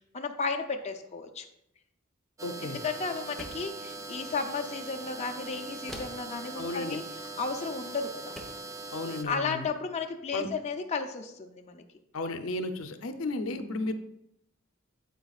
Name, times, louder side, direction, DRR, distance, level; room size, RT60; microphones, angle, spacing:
voice 1, 0.1-1.5 2.6-8.4 9.3-11.8, left 4 dB, 30° left, 3 dB, 0.5 m, -34 dB
voice 2, 2.4-2.8 6.6-7.0 8.9-9.7 10.3-10.6 12.1-13.9, left 2 dB, 70° left, 8 dB, 0.7 m, -34 dB
sound 1, 2.4-9.2, right 2 dB, 15° right, 0.4 m, -41 dB
sound 2, 3.4-3.8 5.9-6.3 7.7-7.8 8.4-8.7, equal, ahead, 0.9 m, -44 dB
9.2 x 8.0 x 2.4 m, 0.79 s
head